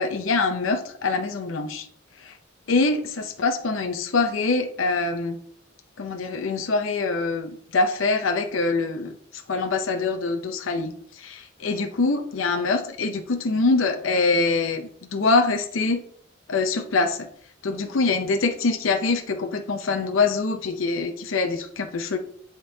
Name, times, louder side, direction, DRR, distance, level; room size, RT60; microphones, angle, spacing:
voice 1, 0.0-1.9 2.2-2.3 2.7-5.4 6.0-9.1 9.5-16.0 16.5-17.3 17.6-22.2, left 3 dB, 90° left, 5 dB, 0.6 m, -24 dB
10.5 x 3.7 x 2.7 m, 0.62 s
head